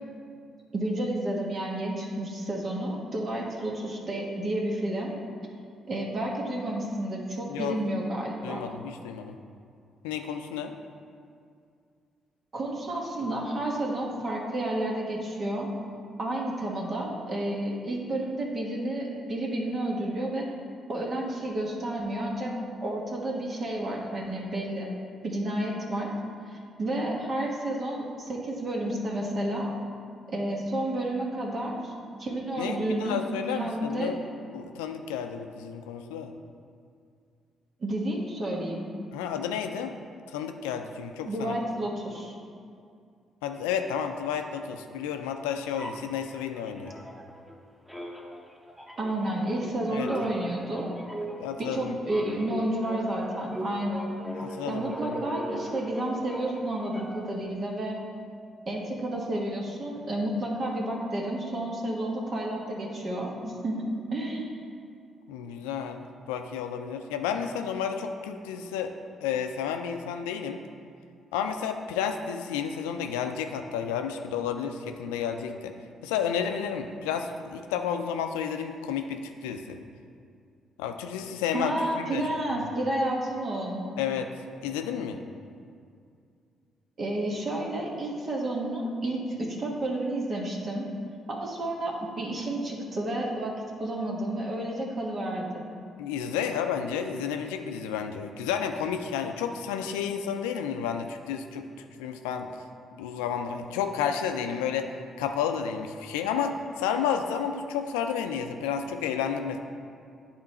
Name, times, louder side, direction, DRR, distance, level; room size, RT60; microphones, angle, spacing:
voice 1, 0.7-5.1 5.9-8.6 12.5-15.7 16.2-20.5 20.9-22.5 22.8-24.9 25.2-26.1 26.5-29.7 30.3-31.9 32.2-34.1 37.8-38.9 41.2-42.4 49.0-50.9 51.6-54.1 54.7-58.0 58.7-64.5 81.5-83.9 87.0-90.9 91.3-93.5 93.8-95.6, right 1 dB, 50° right, -2 dB, 1.3 m, -31 dB
voice 2, 8.4-9.4 10.0-10.7 32.6-36.3 39.1-40.0 40.3-41.5 43.4-47.0 49.9-50.1 51.4-52.0 54.4-55.2 65.3-68.9 69.2-70.6 71.3-75.7 76.0-79.8 80.8-82.2 84.0-84.3 84.6-85.2 96.0-101.7 102.0-102.5 103.0-104.9 105.2-109.6, left 7 dB, 90° left, 6 dB, 0.4 m, -31 dB
sound 1, 45.7-47.6 47.9-57.4, equal, ahead, 1.1 m, -39 dB
8.9 x 3.8 x 4.2 m, 2.3 s
hypercardioid pair, 50°, 0 cm